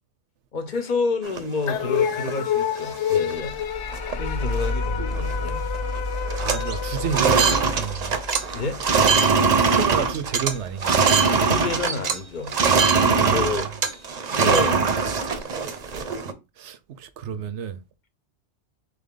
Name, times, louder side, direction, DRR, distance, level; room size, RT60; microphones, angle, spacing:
voice 1, 0.5-3.5 4.1-5.7 8.5-8.8 11.5-12.5 13.0-13.7 14.3-14.9, left 4 dB, 45° left, 0.8 m, -29 dB
sound 1, 1.2-2.3 2.8-2.9 3.1-3.5 3.9-4.1 4.4-5.5 5.7-6.0 6.2-12.2 12.5-16.3, right 5 dB, 45° right, 0.6 m, -22 dB
sound 2, 1.7-8.2, left 9 dB, 80° left, 0.9 m, -29 dB
sound 3, 3.3-12.6, left 2 dB, 10° left, 0.4 m, -32 dB
voice 2, 6.4-8.2 9.7-11.1 13.3-13.7 16.6-17.8, right 8 dB, 75° right, 1.0 m, -30 dB
4.1 x 3.4 x 3.7 m
omnidirectional pair, 1.2 m